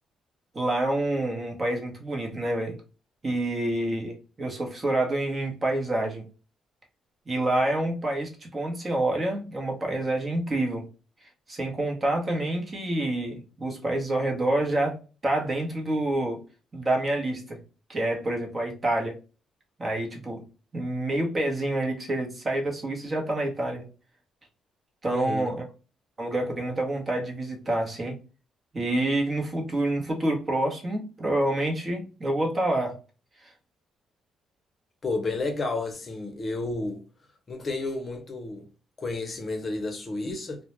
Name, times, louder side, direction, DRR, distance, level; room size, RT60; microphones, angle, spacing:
voice 1, 0.5-2.8 3.2-6.3 7.3-10.8 11.5-16.4 16.7-17.6 17.9-19.2 19.8-20.4 20.7-23.9 25.0-25.6 26.2-28.2 28.7-33.0 33.4-33.5, right 1 dB, 30° right, 0.9 m, -27 dB
voice 2, 25.1-25.5 35.0-37.0 37.5-38.7 39.0-40.6, left 2 dB, 40° left, 0.6 m, -31 dB
2.2 x 2.1 x 3.0 m
cardioid pair, 90°, 0 cm